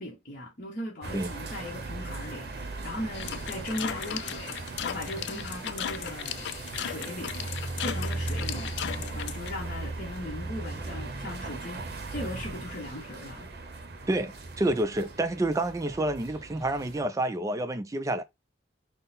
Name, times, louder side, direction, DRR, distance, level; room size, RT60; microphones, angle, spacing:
voice 1, 0.0-7.5 7.8-8.8 9.1-13.5, left 1 dB, 50° left, 0.9 m, -38 dB
sound 1, 1.0-17.0, right 2 dB, 60° right, 0.7 m, -38 dB
sound 2, 3.1-9.5, left 9 dB, 70° left, 0.3 m, -36 dB
voice 2, 14.1-18.2, right 1 dB, 20° right, 0.3 m, -28 dB
3.7 x 2.0 x 4.0 m
head